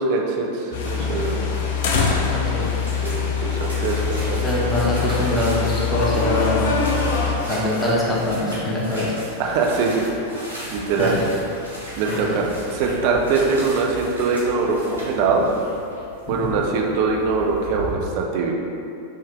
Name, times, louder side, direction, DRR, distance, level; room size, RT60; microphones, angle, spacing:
voice 1, 0.0-1.6 3.0-4.4 9.4-10.1 10.7-11.2 12.0-15.5 16.3-18.5, right 4 dB, 45° right, 0 dB, 0.5 m, -22 dB
sound 1, 0.7-7.4, left 5 dB, 55° left, 0.4 m, -23 dB
voice 2, 2.3-2.7 4.4-6.7 7.5-9.1 11.0-11.2 12.1-12.3 16.3-16.6, left 1 dB, 15° left, -6 dB, 0.8 m, -23 dB
sound 2, 2.6-17.9, equal, 85° left, 1.2 m, -36 dB
3.6 x 2.6 x 3.5 m, 2.7 s
figure-of-eight pair, 90°, 0 cm